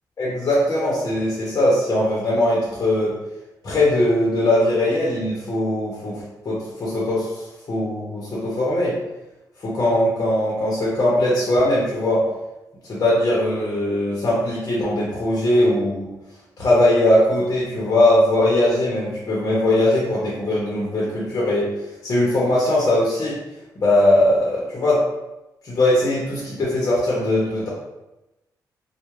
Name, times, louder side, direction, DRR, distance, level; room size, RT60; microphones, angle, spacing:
voice 1, 0.2-3.2 3.6-7.3 7.7-8.9 9.6-12.2 12.8-16.1 16.6-21.7 22.0-23.4 23.8-25.0 25.6-27.7, left 1 dB, 50° left, -5 dB, 0.7 m, -20 dB
2.2 x 2.1 x 3.0 m, 0.97 s
cardioid pair, 95°, 7 cm